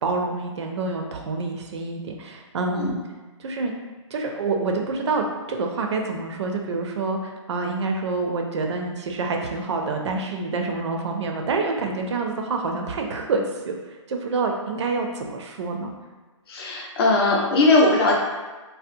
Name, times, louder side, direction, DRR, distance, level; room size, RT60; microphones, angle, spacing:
voice 1, 0.0-3.0 3.4-3.8 4.1-15.9, right 3 dB, 60° right, 3 dB, 0.4 m, -27 dB
voice 2, 16.5-18.1, left 2 dB, 50° left, -2 dB, 0.6 m, -19 dB
2.7 x 2.0 x 2.5 m, 1.3 s
hypercardioid pair, 155°, 17 cm